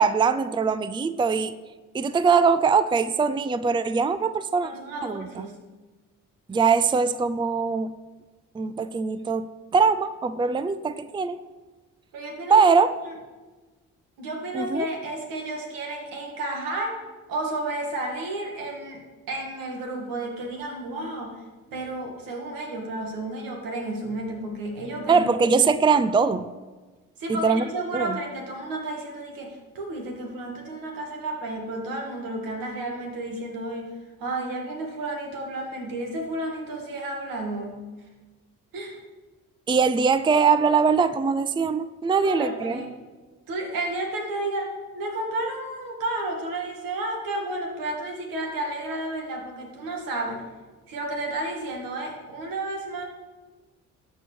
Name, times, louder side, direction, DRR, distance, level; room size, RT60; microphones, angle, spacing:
voice 1, 0.0-1.5 1.9-4.7 5.0-5.5 6.5-7.9 8.5-9.5 9.7-11.4 12.5-12.9 14.5-14.9 25.1-26.5 27.3-27.6 27.9-28.2 39.7-42.8, right 5 dB, 15° right, 13 dB, 0.4 m, -22 dB
voice 2, 4.6-5.5 12.1-12.6 13.1-13.2 14.2-17.0 17.3-19.0 19.3-21.4 21.7-25.5 27.2-33.9 34.2-37.8 38.7-39.0 42.1-42.9 43.5-50.4 50.9-53.0, right 2 dB, 80° right, 1 dB, 2.2 m, -32 dB
13.0 x 4.6 x 6.2 m, 1.3 s
supercardioid pair, 65°, 33 cm